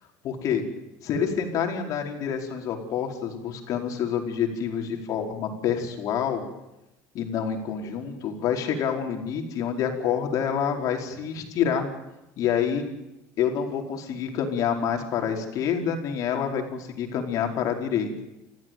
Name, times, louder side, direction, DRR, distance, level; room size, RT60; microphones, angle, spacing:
voice 1, 0.2-0.6 1.0-6.4 7.1-11.9 12.4-12.8 13.4-18.1, left 8 dB, 60° left, 3 dB, 5.0 m, -27 dB
29.5 x 15.5 x 9.3 m, 0.94 s
supercardioid pair, 105°, 7 cm